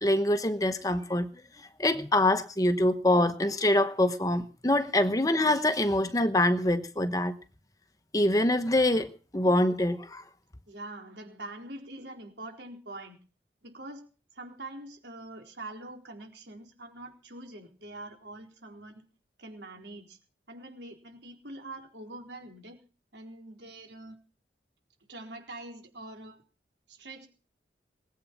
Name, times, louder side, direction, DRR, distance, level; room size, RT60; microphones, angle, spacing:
voice 1, 0.0-1.3 1.6-7.3 8.1-9.1 9.3-10.2, left 1 dB, 20° left, 1.0 m, -25 dB
voice 2, 10.7-13.2 13.6-14.1 14.3-19.0 19.4-20.2 20.5-22.8 23.1-24.2 25.1-26.4 26.9-27.3, right 2 dB, 80° right, 4.3 m, -44 dB
20.5 x 8.5 x 7.1 m
head